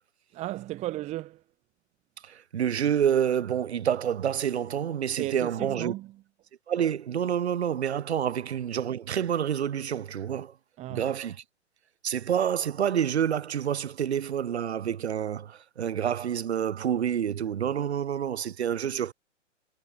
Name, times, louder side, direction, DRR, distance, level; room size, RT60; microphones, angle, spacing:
voice 1, 0.3-1.4 5.2-6.1 10.8-11.1, right 16 dB, 20° right, 1.3 m, -34 dB
voice 2, 2.2-5.9 6.7-10.5 10.9-11.4 12.0-19.1, right 9 dB, 55° right, 6.6 m, -28 dB
figure-of-eight pair, 130°, 38 cm